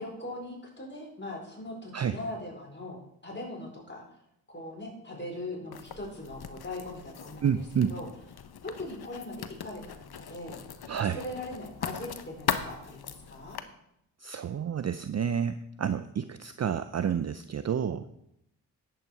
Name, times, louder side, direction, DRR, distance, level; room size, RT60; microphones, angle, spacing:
voice 1, 0.0-4.0 4.5-7.5 7.9-8.1 8.6-13.6, left 1 dB, 25° left, -1 dB, 4.7 m, -40 dB
Writing, 5.7-13.6, left 7 dB, 55° left, 1.0 m, -39 dB
voice 2, 7.4-7.9 10.9-11.2 14.2-18.1, right 8 dB, 35° right, 12 dB, 0.6 m, -29 dB
10.5 x 8.7 x 4.8 m, 0.79 s
supercardioid pair, 45°, 46 cm